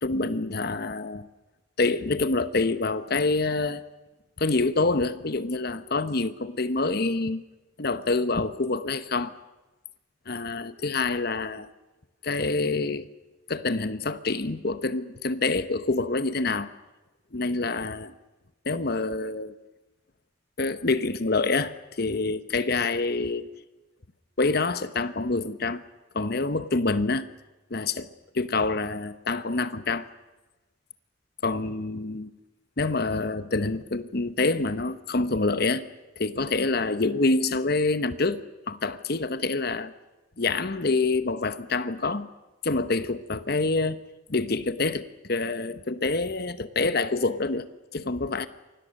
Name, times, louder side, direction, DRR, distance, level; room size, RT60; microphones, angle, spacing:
voice 1, 0.0-1.3 1.8-3.8 4.4-7.4 7.8-9.3 10.3-11.7 12.2-13.1 13.5-16.7 17.3-18.1 18.6-19.5 20.6-23.5 24.4-25.8 26.1-27.3 27.7-28.1 28.3-30.1 31.4-32.3 32.8-35.8 36.2-39.9 40.4-42.3 42.6-44.0 44.3-47.7 47.9-48.5, left 3 dB, 55° left, 12 dB, 1.0 m, -26 dB
28.5 x 24.0 x 6.6 m, 1.1 s
head